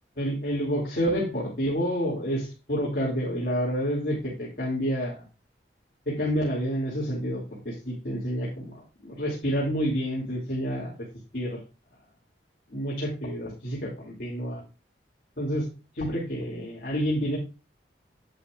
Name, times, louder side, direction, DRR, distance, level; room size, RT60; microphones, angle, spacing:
voice 1, 0.2-5.2 6.1-8.7 9.0-10.9 11.3-11.6 12.7-14.6 15.4-15.7 15.9-17.4, equal, 50° left, -4 dB, 2.7 m, -29 dB
10.5 x 8.4 x 2.5 m, 0.31 s
head